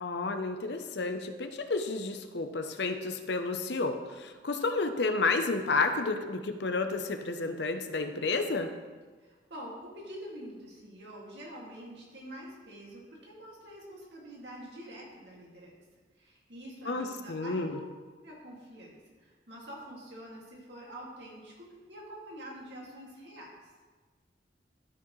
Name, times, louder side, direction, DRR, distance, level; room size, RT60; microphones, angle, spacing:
voice 1, 0.0-8.7 16.9-17.7, left 3 dB, 75° left, 7 dB, 0.7 m, -31 dB
voice 2, 9.2-15.8 16.2-17.8 18.2-23.6, equal, 75° right, -3 dB, 2.3 m, -46 dB
13.0 x 5.9 x 3.2 m, 1.4 s
head